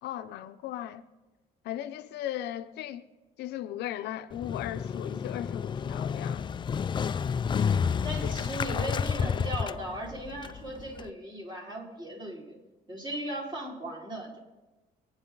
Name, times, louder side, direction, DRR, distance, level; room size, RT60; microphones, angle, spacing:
voice 1, 0.0-1.0 1.6-3.0 3.4-6.5 8.2-8.4, left 12 dB, 75° left, 0.7 m, -37 dB
Motorcycle, 4.3-11.1, left 6 dB, 30° left, 0.4 m, -30 dB
voice 2, 8.0-12.6 12.9-14.4, right 1 dB, 25° right, 4.9 m, -37 dB
24.5 x 9.9 x 3.9 m
cardioid pair, 110°, 17 cm